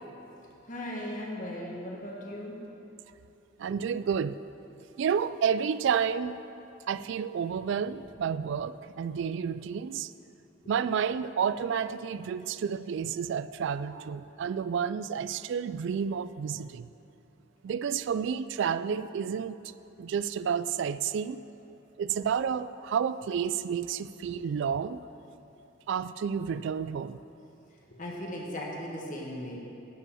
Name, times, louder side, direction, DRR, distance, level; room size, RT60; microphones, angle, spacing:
voice 1, 0.7-2.6 27.9-29.6, left 1 dB, 40° left, -2 dB, 1.6 m, -37 dB
voice 2, 3.6-4.4 5.0-6.4 6.9-10.1 10.7-16.9 17.6-19.6 20.0-21.4 22.0-25.0 25.9-27.2, right 7 dB, 65° right, 15 dB, 0.3 m, -30 dB
12.5 x 5.4 x 8.6 m, 2.9 s
head